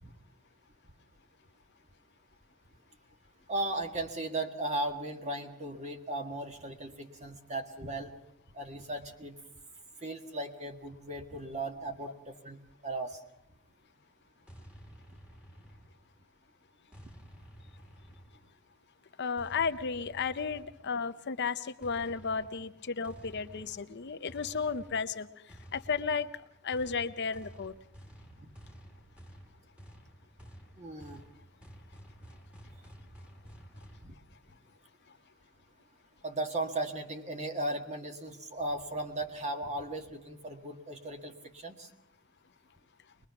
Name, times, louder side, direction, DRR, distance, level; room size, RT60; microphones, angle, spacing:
voice 1, 3.5-8.1 8.5-9.4 10.0-13.2 28.4-28.5 30.8-31.2 34.0-34.2 36.2-41.9, right 2 dB, 35° right, 5 dB, 1.7 m, -37 dB
sound 1, 14.5-16.2 16.9-18.6 19.4-21.0 21.8-34.1, equal, 5° right, 2.1 m, -52 dB
voice 2, 19.2-25.3 25.7-26.3 26.6-27.7, left 5 dB, 55° left, 10 dB, 0.7 m, -33 dB
23.0 x 21.0 x 5.9 m, 0.82 s
head